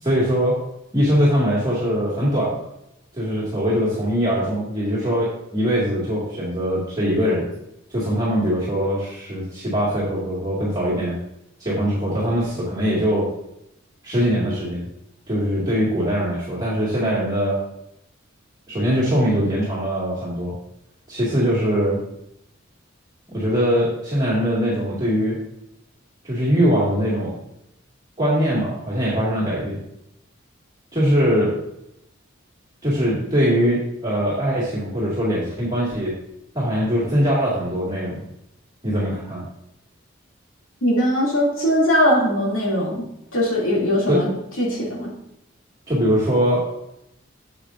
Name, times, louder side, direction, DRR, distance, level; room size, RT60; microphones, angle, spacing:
voice 1, 0.0-0.6 0.9-2.6 3.1-7.5 7.9-11.2 11.6-13.3 14.0-14.9 15.3-17.6 18.7-20.6 21.1-22.0 23.3-25.4 26.2-27.3 28.2-29.8 30.9-31.6 32.8-36.2 36.5-38.2 38.8-39.4 44.1-44.3 45.9-46.6, equal, 20° right, -8 dB, 2.1 m, -21 dB
voice 2, 40.8-43.1 43.3-44.3 44.6-45.1, equal, 90° left, -4 dB, 2.7 m, -20 dB
8.3 x 7.4 x 2.6 m, 0.82 s
head